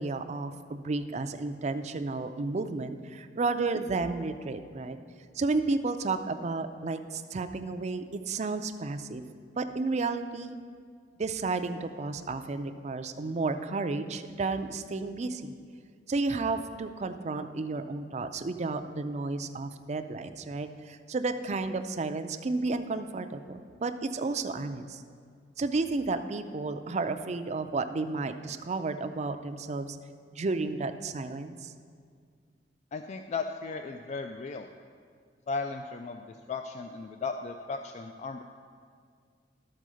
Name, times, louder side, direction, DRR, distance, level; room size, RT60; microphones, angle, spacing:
voice 1, 0.0-5.0 5.3-9.2 9.6-10.6 11.2-15.6 16.1-25.0 25.6-30.0 30.3-31.7, right 3 dB, 40° right, 9 dB, 0.4 m, -32 dB
voice 2, 32.9-34.7 35.5-38.4, left 4 dB, 40° left, 6 dB, 0.3 m, -36 dB
12.5 x 4.6 x 6.3 m, 2.1 s
head